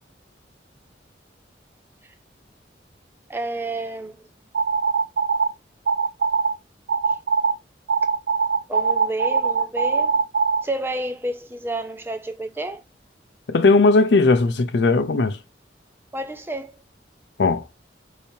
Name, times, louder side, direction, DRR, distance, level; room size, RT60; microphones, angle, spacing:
voice 1, 3.3-4.2 8.7-10.2 10.6-12.8 16.1-16.7, right 1 dB, 10° right, 0.4 m, -30 dB
sound 1, 4.5-5.5 5.9-6.5 6.9-7.5 7.9-10.6, right 5 dB, 70° right, 0.6 m, -21 dB
voice 2, 13.5-15.4 17.4-17.6, left 3 dB, 70° left, 0.5 m, -17 dB
5.0 x 2.8 x 2.7 m
head